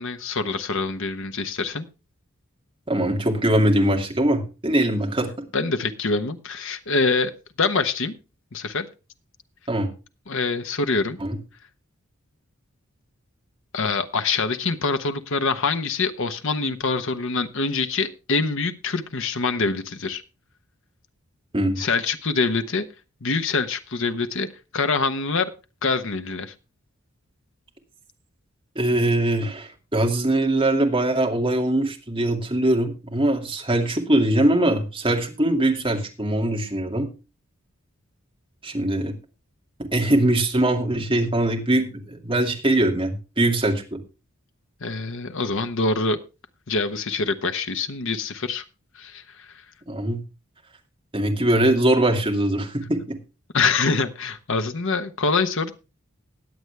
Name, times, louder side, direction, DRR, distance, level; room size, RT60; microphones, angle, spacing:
voice 1, 0.0-1.8 5.5-7.3 7.6-8.1 8.5-8.9 10.3-11.2 13.7-20.2 21.8-22.9 23.2-24.5 24.7-25.5 25.8-26.5 44.8-46.2 46.7-48.6 49.0-49.5 53.5-55.7, left 4 dB, 60° left, 9 dB, 1.1 m, -25 dB
voice 2, 2.9-5.3 9.7-9.9 11.2-11.4 21.5-21.8 28.8-37.1 38.6-39.1 39.9-44.0 49.9-50.2 51.1-53.2, right 1 dB, 25° right, 1 dB, 2.4 m, -22 dB
20.5 x 8.1 x 3.4 m, 0.31 s
head